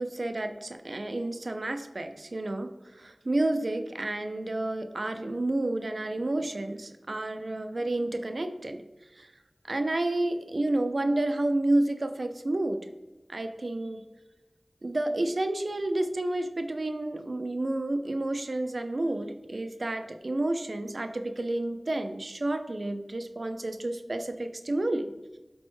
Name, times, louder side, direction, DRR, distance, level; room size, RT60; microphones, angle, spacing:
voice 1, 0.0-2.7 3.3-8.8 9.7-12.8 13.3-14.0 14.8-25.1, right 2 dB, 70° right, 7 dB, 0.3 m, -30 dB
5.0 x 2.0 x 3.1 m, 1.1 s
wide cardioid pair, 45°, 0 cm